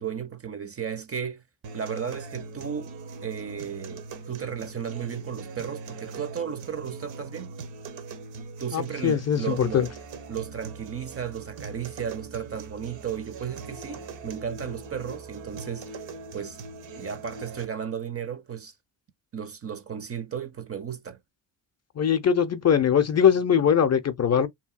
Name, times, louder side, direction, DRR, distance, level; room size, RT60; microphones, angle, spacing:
voice 1, 0.0-1.4 1.7-2.9 3.2-7.5 8.6-9.9 10.3-16.1 16.3-16.6 17.0-18.7 19.3-21.2, right 8 dB, 30° right, 0.5 m, -34 dB
sound 1, 1.6-17.7, right 4 dB, 75° right, 0.9 m, -41 dB
voice 2, 8.7-9.9 22.0-24.5, left 8 dB, 35° left, 0.5 m, -21 dB
2.8 x 2.7 x 2.3 m
cardioid pair, 85°, 46 cm